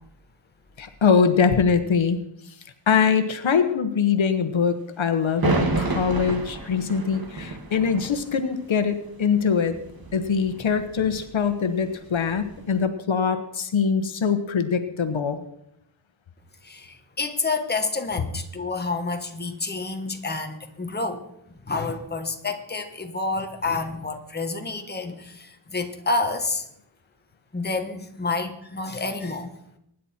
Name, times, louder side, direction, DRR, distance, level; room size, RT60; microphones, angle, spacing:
voice 1, 0.8-2.2 2.9-9.7 10.1-15.4, left 6 dB, 75° left, 9 dB, 1.3 m, -23 dB
sound 1, 5.3-12.8, right 2 dB, 50° right, 2.2 m, -31 dB
voice 2, 16.6-21.2 21.6-26.6 27.5-29.6, left 3 dB, 20° left, 5 dB, 1.4 m, -29 dB
23.5 x 10.5 x 4.4 m, 0.76 s
wide cardioid pair, 135°, 47 cm